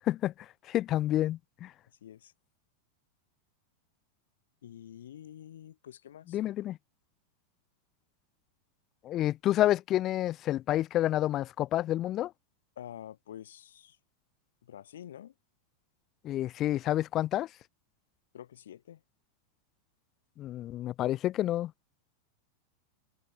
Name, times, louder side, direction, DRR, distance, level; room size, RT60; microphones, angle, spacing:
voice 1, 0.7-1.7 6.3-6.8 9.0-12.3 16.2-17.5 20.4-21.7, left 13 dB, 35° left, 0.9 m, -29 dB
voice 2, 2.0-2.3 4.6-6.4 12.8-14.0 14.6-15.3 18.3-19.0, left 10 dB, 70° left, 2.2 m, -47 dB
figure-of-eight pair, 90°, 0 cm